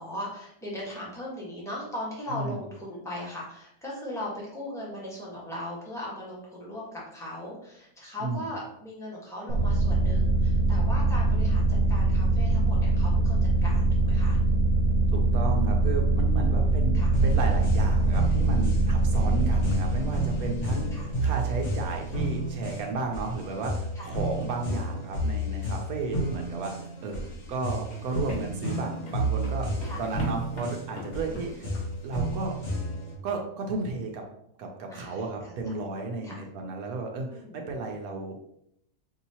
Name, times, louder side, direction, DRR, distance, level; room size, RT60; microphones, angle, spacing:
voice 1, 0.0-14.4 16.4-17.1 19.1-19.4 20.9-21.1 23.9-24.1 27.0-27.3 29.8-30.0 31.3-31.5 34.9-35.7 36.2-36.4 37.2-37.7, left 1 dB, ahead, -5 dB, 1.2 m, -39 dB
sound 1, 9.5-22.7, right 2 dB, 55° right, 1.0 m, -24 dB
voice 2, 15.1-29.7 30.0-31.7 32.0-32.5 33.2-34.2 34.6-38.4, right 3 dB, 85° right, 2 dB, 1.2 m, -33 dB
sound 2, 17.1-33.2, right 1 dB, 55° left, 1.4 m, -31 dB
sound 3, 26.6-32.2, left 2 dB, 80° left, 1.5 m, -43 dB
5.3 x 2.8 x 2.8 m, 0.75 s
omnidirectional pair, 1.5 m